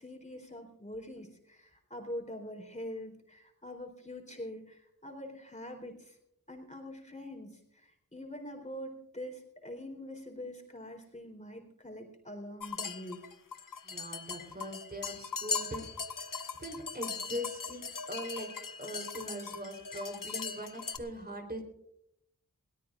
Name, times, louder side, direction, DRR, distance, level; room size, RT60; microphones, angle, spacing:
voice 1, 0.0-6.2 6.5-13.2, left 1 dB, 20° left, 1 dB, 3.7 m, -44 dB
sound 1, 12.6-21.0, left 5 dB, 75° left, 0.9 m, -39 dB
voice 2, 13.8-15.8 16.1-18.5 18.8-21.6, equal, 30° right, 2 dB, 3.7 m, -41 dB
21.5 x 18.0 x 2.5 m, 0.74 s
wide cardioid pair, 65°, 33 cm